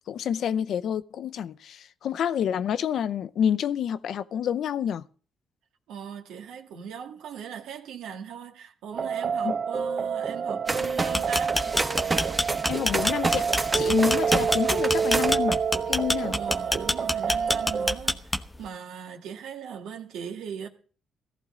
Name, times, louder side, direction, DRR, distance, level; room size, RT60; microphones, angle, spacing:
voice 1, 0.1-5.0 9.4-9.5 12.7-13.5 13.7-15.6 15.9-16.4, left 9 dB, 70° left, 0.6 m, -28 dB
voice 2, 5.9-11.6 16.3-20.7, right 7 dB, 85° right, 1.9 m, -39 dB
sound 1, 8.9-17.9, right 6 dB, 45° right, 0.6 m, -28 dB
sound 2, 10.7-15.3, right 3 dB, 25° right, 1.4 m, -30 dB
sound 3, 11.1-18.7, left 1 dB, 10° left, 0.9 m, -26 dB
15.0 x 15.0 x 3.8 m
cardioid pair, 90°, 0 cm